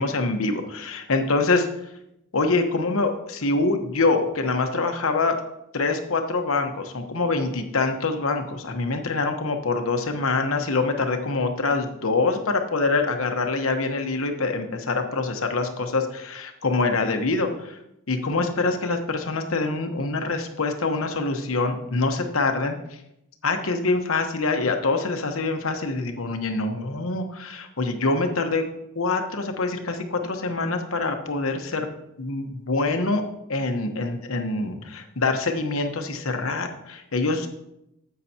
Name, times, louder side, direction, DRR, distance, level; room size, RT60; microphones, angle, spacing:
voice 1, 0.0-1.7 2.3-5.3 5.7-17.8 18.1-22.7 23.4-28.6 28.9-31.9 32.2-33.2 33.5-37.5, left 3 dB, 85° left, 5 dB, 1.0 m, -25 dB
9.8 x 8.5 x 2.8 m, 0.84 s
head